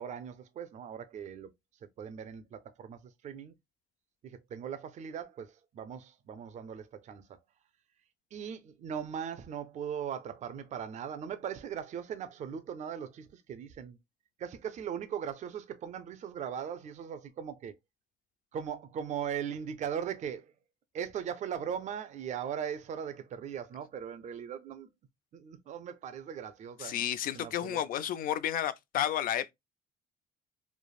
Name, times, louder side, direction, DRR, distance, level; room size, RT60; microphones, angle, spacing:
voice 1, 0.0-1.5 2.0-3.5 4.2-7.3 8.3-14.0 14.4-17.8 18.5-20.5 20.9-24.9 25.3-26.9 27.3-27.8, right 8 dB, 45° right, 0.5 m, -39 dB
voice 2, 26.8-29.5, left 10 dB, 55° left, 0.4 m, -31 dB
3.2 x 2.0 x 2.3 m
cardioid pair, 110°, 17 cm